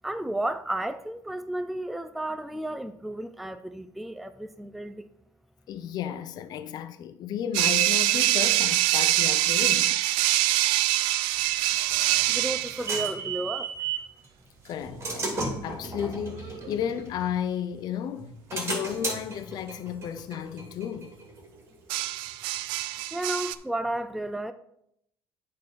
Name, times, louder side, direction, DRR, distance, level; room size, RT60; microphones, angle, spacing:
voice 1, 0.0-5.1 12.3-13.7 23.1-24.5, right 1 dB, ahead, 0.4 m, -32 dB
voice 2, 5.7-10.0 14.6-15.3 15.6-21.1, left 9 dB, 55° left, 0.5 m, -33 dB
sound 1, 7.5-12.9 16.4-16.7 21.9-23.5, right 15 dB, 85° right, 0.4 m, -24 dB
sound 2, 11.9-14.1 14.6-17.7 18.2-21.6, right 4 dB, 30° right, 2.7 m, -35 dB
8.6 x 3.9 x 5.7 m
cardioid pair, 100°, 8 cm